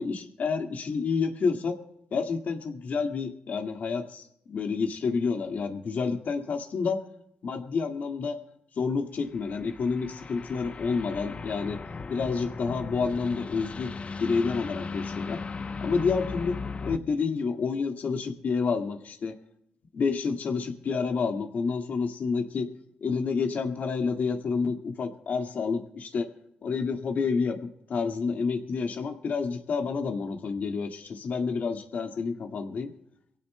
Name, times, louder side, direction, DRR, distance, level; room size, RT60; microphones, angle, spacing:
voice 1, 0.0-1.8 2.1-7.0 7.4-8.4 8.8-11.8 12.1-13.9 14.2-15.4 15.8-16.6 16.8-19.4 19.9-22.7 23.0-26.3 26.6-32.9, left 5 dB, 65° left, 4 dB, 1.9 m, -29 dB
sound 1, 9.3-17.0, left 4 dB, 45° left, 0.8 m, -37 dB
23.5 x 17.0 x 2.2 m, 0.76 s
supercardioid pair, 55°, 3 cm